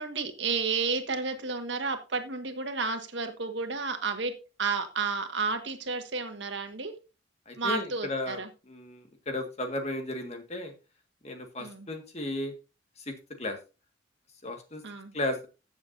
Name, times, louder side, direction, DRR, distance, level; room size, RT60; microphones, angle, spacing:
voice 1, 0.0-4.3 4.6-6.9 7.6-8.5 11.6-11.9 14.8-15.1, right 4 dB, 70° right, 7 dB, 1.6 m, -31 dB
voice 2, 7.4-8.4 8.6-10.7 11.2-12.5 13.0-13.6 14.4-14.8 15.1-15.5, left 1 dB, 35° left, 5 dB, 1.8 m, -34 dB
15.5 x 7.1 x 2.7 m, 0.30 s
head